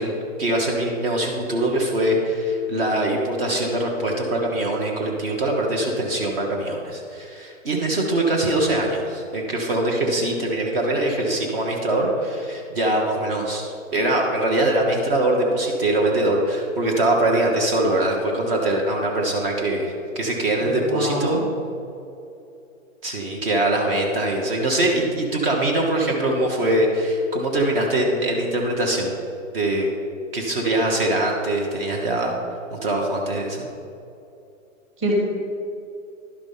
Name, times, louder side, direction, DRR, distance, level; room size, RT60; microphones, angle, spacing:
voice 1, 0.0-21.4 23.0-29.2 29.5-29.9 30.3-32.4 32.7-33.7, right 1 dB, 45° right, 0 dB, 1.2 m, -22 dB
voice 2, 20.6-21.5 35.0-35.1, right 1 dB, 15° right, -3 dB, 1.4 m, -26 dB
11.0 x 5.0 x 5.5 m, 2.7 s
hypercardioid pair, 160°, 40 cm